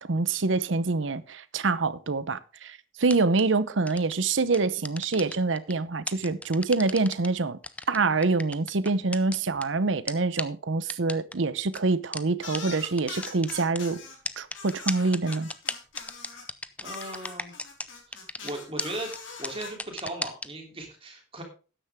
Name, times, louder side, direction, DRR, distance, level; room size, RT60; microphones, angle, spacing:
voice 1, 0.0-7.6 7.9-14.0 14.4-15.5, right 3 dB, 85° right, 0.8 m, -26 dB
sound 1, 3.0-3.4 3.9-4.1 4.5-5.7 6.1-7.3 7.6-9.6 10.1-10.2 10.4-10.5 10.9-11.3 11.7-11.8 12.1-12.2 12.5-12.6 12.8-13.8 14.3-17.9 18.1-18.5 18.8-18.9 19.1-19.2 19.4-20.5, left 2 dB, 5° left, 0.5 m, -34 dB
sound 2, 12.4-14.2 14.5-16.5 16.8-19.7, left 4 dB, 90° left, 4.3 m, -42 dB
voice 2, 16.8-17.5 18.1-19.1 19.4-21.4, right 1 dB, 30° right, 3.1 m, -37 dB
13.0 x 9.9 x 3.6 m
head